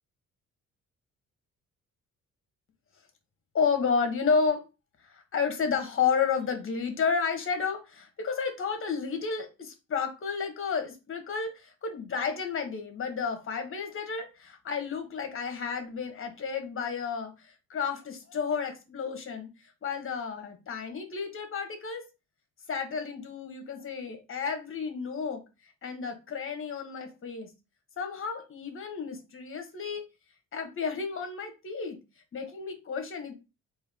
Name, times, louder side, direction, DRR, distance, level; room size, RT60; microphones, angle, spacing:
voice 1, 3.5-4.6 5.0-22.0 22.7-25.4 25.8-27.5 28.0-30.0 30.5-32.0 32.3-33.3, left 5 dB, 45° left, 6 dB, 1.2 m, -31 dB
4.5 x 2.7 x 3.5 m, 0.28 s
cardioid pair, 90°, 30 cm